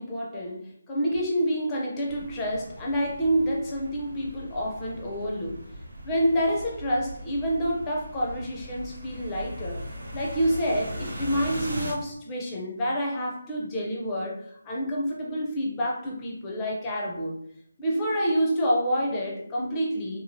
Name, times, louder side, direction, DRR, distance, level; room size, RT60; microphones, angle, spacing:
voice 1, 0.0-5.6 6.0-9.8 10.1-17.4 17.8-20.2, equal, 15° left, -3 dB, 0.5 m, -28 dB
sound 1, 2.1-11.9, equal, 75° right, 1.0 m, -39 dB
2.9 x 2.3 x 2.7 m, 0.72 s
hypercardioid pair, 175°, 0 cm